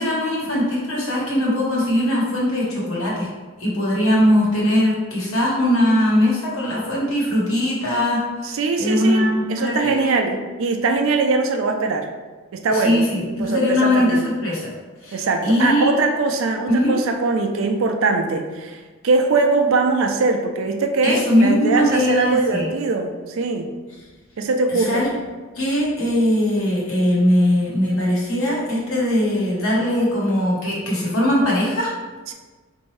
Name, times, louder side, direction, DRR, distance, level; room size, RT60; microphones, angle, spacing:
voice 1, 0.0-3.3 3.6-10.2 12.7-14.7 15.0-15.9 16.7-16.9 21.0-22.7 24.7-25.1 25.5-31.9, left 1 dB, 70° left, -5 dB, 1.3 m, -20 dB
voice 2, 8.5-12.1 12.5-13.0 13.4-14.2 15.1-18.8 19.0-23.7 24.4-25.1 32.3-32.4, right 3 dB, 65° right, 4 dB, 0.4 m, -21 dB
4.4 x 2.7 x 3.2 m, 1.3 s
head